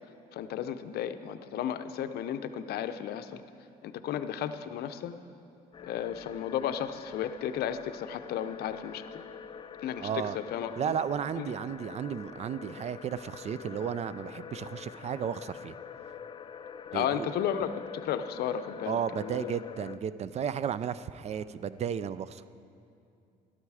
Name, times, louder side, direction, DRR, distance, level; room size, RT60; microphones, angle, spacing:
voice 1, 0.3-3.4 3.8-5.2 5.8-9.0 9.8-10.7 11.4-11.5 16.9-19.5, left 9 dB, 70° left, 11 dB, 0.6 m, -34 dB
sound 1, 5.7-20.0, left 7 dB, 30° left, 0.4 m, -45 dB
voice 2, 10.0-10.4 10.8-15.8 16.9-17.3 18.9-22.5, right 8 dB, 40° right, 15 dB, 0.4 m, -34 dB
13.0 x 12.5 x 4.9 m, 2.6 s
cardioid pair, 110°, 17 cm